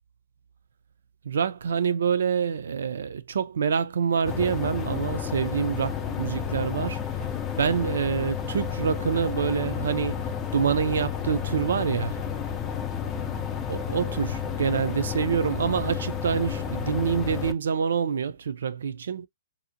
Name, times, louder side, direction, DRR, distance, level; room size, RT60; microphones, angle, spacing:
voice 1, 1.2-7.0 7.6-10.2 10.5-12.2 13.7-19.3, right 7 dB, 75° right, 0.4 m, -26 dB
sound 1, 4.2-17.5, left 7 dB, 20° left, 0.4 m, -31 dB
2.6 x 2.0 x 2.7 m
hypercardioid pair, 135°, 0 cm